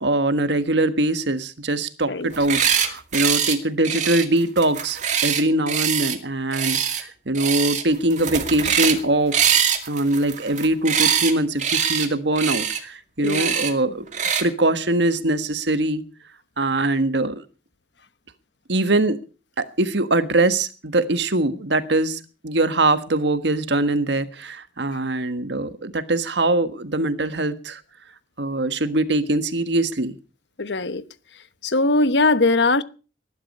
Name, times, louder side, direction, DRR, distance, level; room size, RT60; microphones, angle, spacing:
voice 1, 0.0-9.6 9.9-14.0 14.4-16.0 16.6-17.4 18.7-19.2 19.6-27.8 28.4-30.2, right 2 dB, 75° right, 11 dB, 1.5 m, -22 dB
sound 1, 2.3-2.9 3.1-3.6 3.8-6.2 6.5-7.0 7.3-7.8 8.1-9.0 9.3-11.3 11.6-12.1 12.4-12.8 13.2-13.7 14.1-14.4, right 8 dB, 45° right, 2.3 m, -23 dB
voice 2, 13.2-13.5 30.6-31.0 31.6-32.8, left 2 dB, 75° left, 14 dB, 1.1 m, -20 dB
19.5 x 11.5 x 5.5 m, 0.36 s
head